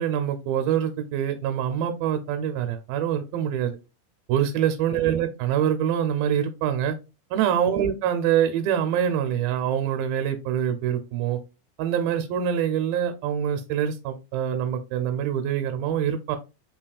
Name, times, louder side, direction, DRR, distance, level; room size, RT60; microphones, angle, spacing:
voice 1, 0.0-3.8 4.3-7.0 7.3-11.4 11.8-16.4, right 9 dB, 85° right, 7 dB, 2.3 m, -25 dB
5.3 x 2.8 x 2.3 m, 0.29 s
omnidirectional pair, 4.0 m